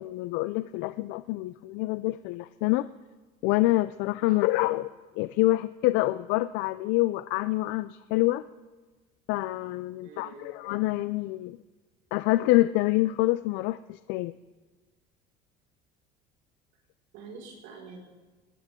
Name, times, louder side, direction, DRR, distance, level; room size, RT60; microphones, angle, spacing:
voice 1, 0.0-2.9 3.4-4.9 5.2-8.4 9.3-11.6 12.1-14.4, left 18 dB, 80° left, 13 dB, 0.5 m, -26 dB
voice 2, 10.0-10.5 17.1-18.0, right 4 dB, 90° right, -1 dB, 5.1 m, -46 dB
20.0 x 19.0 x 3.7 m, 1.3 s
cardioid pair, 130°, 18 cm